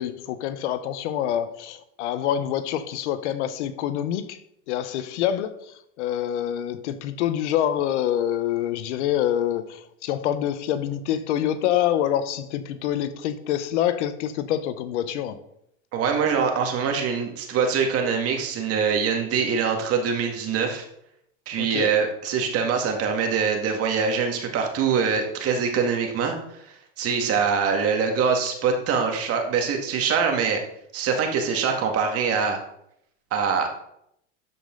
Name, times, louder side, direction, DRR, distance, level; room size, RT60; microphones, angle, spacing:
voice 1, 0.0-4.4 4.7-15.4 21.6-21.9, left 11 dB, 80° left, 12 dB, 1.0 m, -26 dB
voice 2, 15.9-20.8 21.5-26.4 27.0-30.6 30.9-32.6 33.3-33.7, right 6 dB, 40° right, 3 dB, 2.0 m, -24 dB
12.0 x 5.3 x 3.9 m, 0.75 s
supercardioid pair, 120°, 35 cm